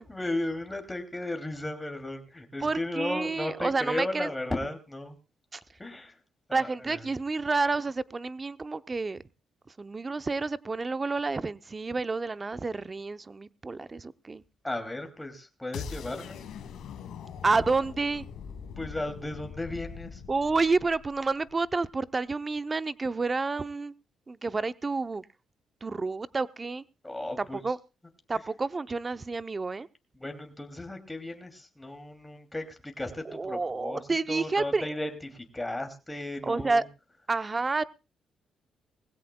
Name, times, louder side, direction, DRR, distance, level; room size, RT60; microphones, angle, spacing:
voice 1, 0.0-5.2 5.8-6.2 6.5-7.1 14.6-16.5 18.8-20.2 27.0-27.7 30.1-36.8, left 1 dB, 10° left, 5 dB, 2.6 m, -35 dB
voice 2, 2.6-4.3 5.5-5.6 6.5-9.2 9.8-14.4 17.4-18.2 20.3-23.9 24.3-25.2 25.8-26.8 27.4-27.8 28.3-29.9 33.3-34.9 36.4-36.8 37.3-37.8, right 3 dB, 25° right, 13 dB, 0.6 m, -29 dB
sound 1, 15.7-21.7, left 7 dB, 80° left, 1.8 m, -42 dB
21.0 x 16.5 x 2.2 m, 0.28 s
cardioid pair, 95°, 0 cm